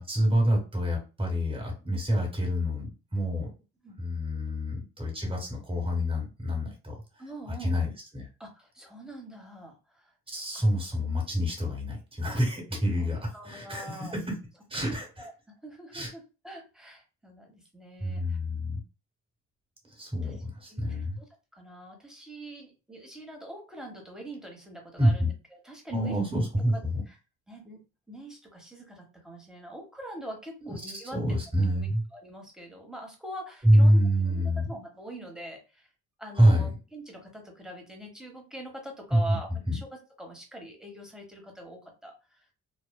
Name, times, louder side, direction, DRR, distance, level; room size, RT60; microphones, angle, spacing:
voice 1, 0.0-3.5 4.0-7.0 7.6-8.3 10.3-14.3 14.7-15.3 15.9-16.1 18.0-18.8 19.9-21.2 25.0-25.3 25.9-27.0 30.6-30.8 31.1-32.0 33.6-34.7 36.3-36.7 39.1-39.4 39.7-39.8, equal, 20° right, 0 dB, 1.3 m, -26 dB
voice 2, 7.2-7.9 8.4-10.6 13.0-13.1 13.3-14.1 15.2-15.3 15.6-18.4 20.2-20.3 20.7-21.3 21.5-26.2 26.7-26.8 27.5-27.8 28.1-31.2 31.7-35.9 36.2-42.4, right 1 dB, ahead, 1 dB, 1.0 m, -44 dB
3.2 x 2.1 x 2.2 m, 0.31 s
cardioid pair, 90°, 30 cm